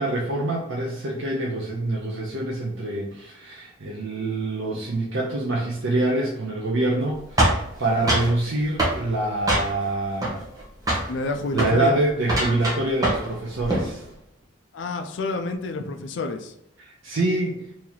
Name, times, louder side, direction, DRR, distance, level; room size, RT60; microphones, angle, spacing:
voice 1, 0.0-10.5 11.5-14.0 16.8-17.6, right 2 dB, 65° right, -2 dB, 0.6 m, -25 dB
sound 1, 7.4-8.3 8.8-9.0 9.5-9.9 10.2-10.6 10.9-11.1 11.5-11.8 12.2-13.3 13.6-13.9, right 1 dB, 15° right, 0.8 m, -23 dB
voice 2, 11.1-12.0 14.7-16.5, left 3 dB, 60° left, 5 dB, 0.4 m, -28 dB
3.0 x 2.8 x 3.9 m, 0.80 s
head